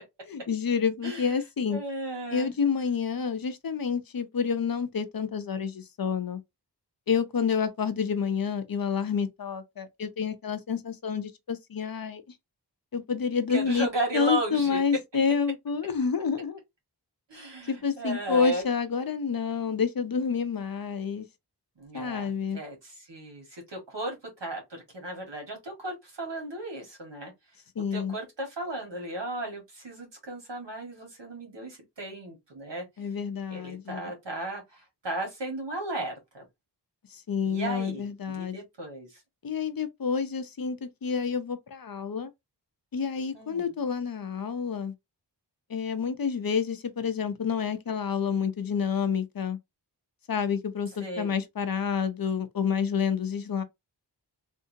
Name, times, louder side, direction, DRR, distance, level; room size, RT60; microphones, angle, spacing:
voice 1, 0.3-1.8 2.3-6.4 7.1-12.2 12.9-13.9 14.1-16.6 17.7-21.3 21.9-22.6 27.8-28.2 33.0-34.1 37.1-38.6 39.4-42.3 42.9-44.9 45.7-49.6 50.3-53.6, left 6 dB, 55° left, 0.6 m, -29 dB
voice 2, 1.0-1.4 1.7-2.5 13.5-14.8 17.3-18.6 21.8-27.3 27.9-32.8 33.5-36.4 37.4-39.2 43.3-43.7 51.0-51.3, right 1 dB, 80° right, 1.7 m, -35 dB
3.6 x 2.7 x 2.7 m
wide cardioid pair, 80°, 42 cm